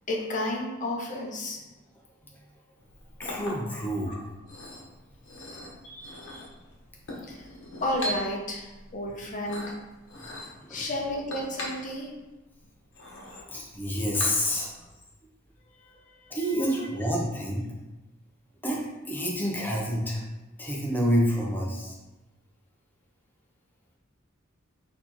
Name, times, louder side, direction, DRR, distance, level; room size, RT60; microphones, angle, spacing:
voice 1, 0.1-1.6 4.1-4.2 5.8-6.5 7.2-7.5 7.8-9.8 10.7-12.1 15.8-16.4 16.8-16.9, left 1 dB, 40° left, -1 dB, 0.8 m, -32 dB
Chink clink, 2.8-14.8, equal, 60° left, 1.1 m, -41 dB
voice 2, 3.2-4.3 10.7-10.8 13.5-14.7 16.3-17.7 18.6-18.8 19.1-20.2 20.6-22.0, equal, 10° left, -3 dB, 0.7 m, -28 dB
4.2 x 2.9 x 4.1 m, 1.1 s
head